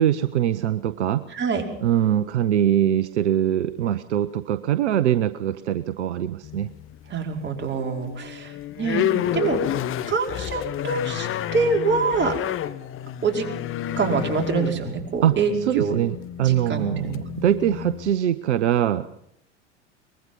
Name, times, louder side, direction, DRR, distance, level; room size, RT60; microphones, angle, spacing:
voice 1, 0.0-1.3 1.8-6.7 15.2-19.1, right 11 dB, 70° right, 14 dB, 1.0 m, -22 dB
voice 2, 1.3-1.6 7.1-9.1 9.3-9.6 10.1-12.3 13.2-13.5 14.0-16.0 16.4-17.2, right 5 dB, 30° right, 2 dB, 5.3 m, -25 dB
sound 1, 6.4-7.1 7.6-18.2, left 12 dB, 35° left, 1.3 m, -30 dB
23.5 x 21.0 x 5.5 m, 0.71 s
figure-of-eight pair, 80°, 35 cm